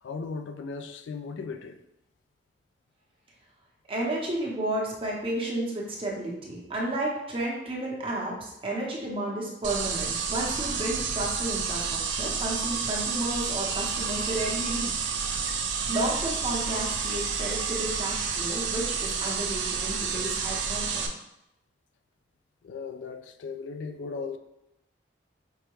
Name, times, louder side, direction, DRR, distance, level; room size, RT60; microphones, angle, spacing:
voice 1, 0.0-1.8 22.6-24.4, left 4 dB, 75° left, 0.3 m, -37 dB
voice 2, 3.9-15.6 15.9-21.1, right 1 dB, 30° right, 0.9 m, -32 dB
sound 1, 9.6-21.1, right 5 dB, 80° right, 0.5 m, -30 dB
5.5 x 2.2 x 3.0 m
head